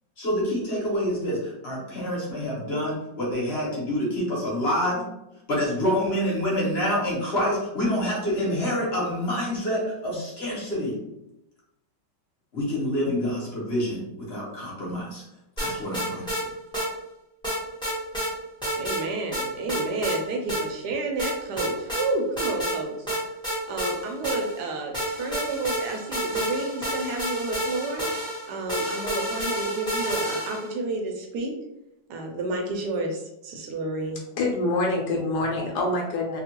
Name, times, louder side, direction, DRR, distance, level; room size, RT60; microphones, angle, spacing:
voice 1, 0.2-5.0 5.5-11.0 12.5-15.2 15.6-16.5, equal, 45° left, -5 dB, 1.0 m, -27 dB
sound 1, 15.6-16.4 16.7-16.9 17.4-18.3 18.6-19.0 19.3-20.2 20.5-20.6 21.2-22.0 22.4-22.8 23.1-24.6 24.9-30.7, equal, 5° left, 0.7 m, -29 dB
voice 2, 18.8-23.0 23.7-28.0 28.5-31.5 32.1-34.3, right 2 dB, 75° right, 2 dB, 1.0 m, -30 dB
voice 3, 34.4-36.4, left 2 dB, 75° left, -1 dB, 1.1 m, -25 dB
2.9 x 2.4 x 2.8 m, 0.87 s
omnidirectional pair, 2.0 m